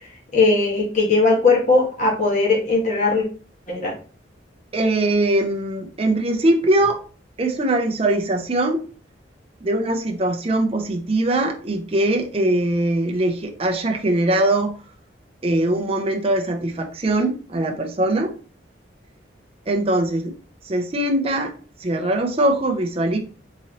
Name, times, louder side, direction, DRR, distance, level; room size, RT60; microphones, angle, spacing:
voice 1, 0.3-3.3 3.7-3.9, left 3 dB, 40° left, -3 dB, 1.2 m, -18 dB
voice 2, 4.7-7.0 7.4-8.9 9.6-14.8 15.4-18.3 19.7-20.3 20.7-21.5 21.8-23.2, right 1 dB, 30° right, 2 dB, 0.5 m, -21 dB
3.9 x 2.9 x 2.8 m, 0.39 s
head